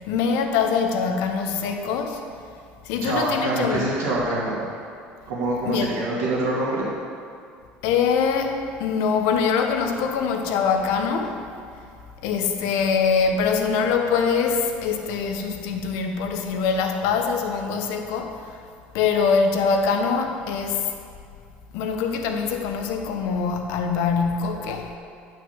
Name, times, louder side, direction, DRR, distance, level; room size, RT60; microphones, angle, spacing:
voice 1, 0.1-2.2 2.8-3.9 5.6-6.0 7.8-11.4 12.2-18.6 18.9-20.9 21.7-24.9, left 5 dB, 75° left, 4 dB, 1.1 m, -23 dB
voice 2, 3.0-4.6 5.3-6.9, right 2 dB, 85° right, -11 dB, 2.6 m, -25 dB
9.2 x 6.4 x 7.4 m, 2.3 s
supercardioid pair, 85°, 5 cm